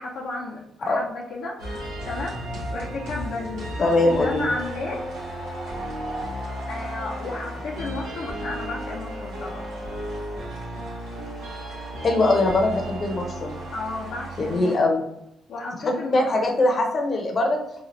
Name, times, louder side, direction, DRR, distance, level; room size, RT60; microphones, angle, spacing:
voice 1, 0.0-5.1 6.7-9.7 13.7-15.0 15.5-16.3, left 3 dB, 70° left, -3 dB, 0.6 m, -33 dB
sound 1, 1.6-14.8, right 1 dB, 90° right, 1.3 m, -34 dB
voice 2, 3.8-4.5 12.0-13.6 14.4-15.0 16.1-17.6, left 2 dB, 40° left, 2 dB, 0.8 m, -21 dB
4.0 x 2.4 x 3.1 m, 0.79 s
cardioid pair, 90°, 0 cm